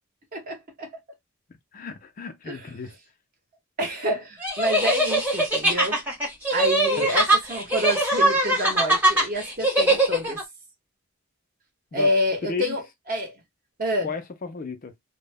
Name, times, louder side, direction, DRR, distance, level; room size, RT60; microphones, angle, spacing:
voice 1, 0.3-1.0 2.5-2.6 3.8-6.0 6.5-10.4 11.9-13.4 13.8-14.1, equal, 40° right, 0.9 m, -28 dB
voice 2, 1.7-2.9 6.9-7.1 11.9-12.1 12.4-12.8 14.0-14.9, left 4 dB, 40° left, 0.4 m, -33 dB
sound 1, 4.4-10.4, right 1 dB, 10° right, 0.8 m, -22 dB
2.1 x 2.0 x 3.3 m
head